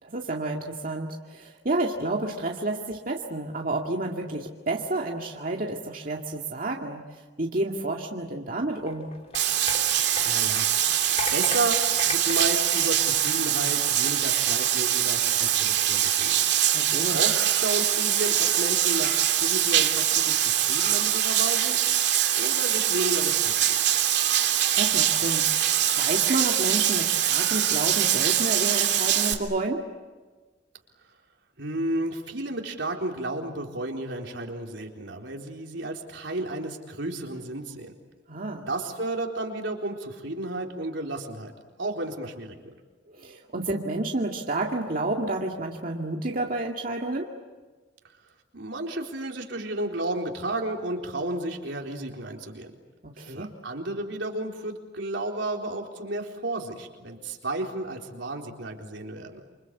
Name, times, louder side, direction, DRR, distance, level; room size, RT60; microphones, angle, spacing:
voice 1, 0.0-9.1 16.7-17.2 24.3-29.9 38.3-38.7 43.1-47.3 53.0-53.5, right 2 dB, 50° right, 0 dB, 2.1 m, -30 dB
sound 1, 8.8-13.7 14.3-14.5, left 2 dB, 35° left, 3.2 m, -37 dB
Bathtub (filling or washing), 9.3-29.3, right 11 dB, 65° right, 2.7 m, -23 dB
voice 2, 10.2-10.7 11.3-16.4 17.1-21.8 22.3-23.8 31.6-37.9 38.7-41.5 41.8-42.7 48.5-52.7 53.2-59.4, right 2 dB, 80° right, 1 dB, 4.0 m, -32 dB
28.0 x 25.5 x 8.3 m, 1.3 s
head